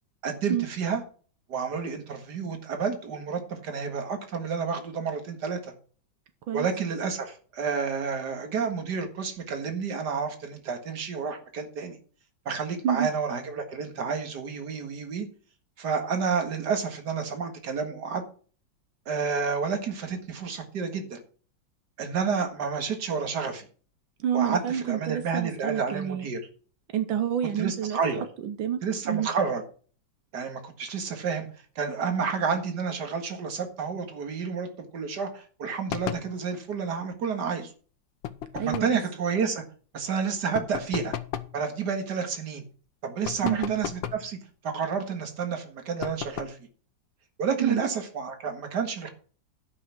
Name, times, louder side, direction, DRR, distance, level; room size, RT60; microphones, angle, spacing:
voice 1, 0.2-1.0 1.5-5.7 6.5-12.0 12.5-15.3 15.8-18.2 19.1-21.2 22.0-23.7 24.3-26.4 27.6-28.3 28.8-29.6 30.3-31.5 31.8-37.7 38.5-39.6 39.9-41.1 41.5-42.6 43.0-44.4 44.6-46.6 47.4-49.1, right 5 dB, 60° right, 6 dB, 2.3 m, -30 dB
voice 2, 24.2-26.3 26.9-28.0 28.4-28.8 29.1-29.3 38.6-38.9 43.4-43.7 47.6-47.8, right 10 dB, 90° right, 9 dB, 1.7 m, -28 dB
sound 1, 35.9-36.3 38.2-39.0 40.5-41.6 43.2-44.3 46.0-46.6, left 10 dB, 80° left, 1.6 m, -35 dB
11.5 x 5.8 x 6.0 m, 0.41 s
omnidirectional pair, 2.1 m